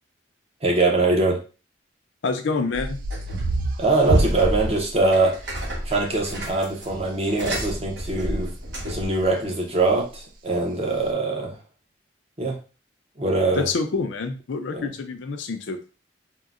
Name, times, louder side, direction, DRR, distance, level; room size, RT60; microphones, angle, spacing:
voice 1, 0.6-1.4 3.8-5.4 5.8-8.5 8.9-11.6 12.4-12.6 13.2-13.7 14.7-14.9, right 2 dB, 35° right, 0 dB, 0.7 m, -22 dB
voice 2, 2.2-3.0 13.6-15.8, left 4 dB, 80° left, 6 dB, 0.4 m, -27 dB
sound 1, 2.7-4.4 5.5-5.6 5.9-6.0 6.3-6.7 7.6-8.3 8.7-9.3 9.9-10.3 11.0-11.1, right 2 dB, 50° right, 0.3 m, -32 dB
sound 2, 3.1-3.6 4.0-9.1, right 1 dB, 75° right, 1.2 m, -28 dB
3.6 x 2.0 x 2.4 m, 0.35 s
head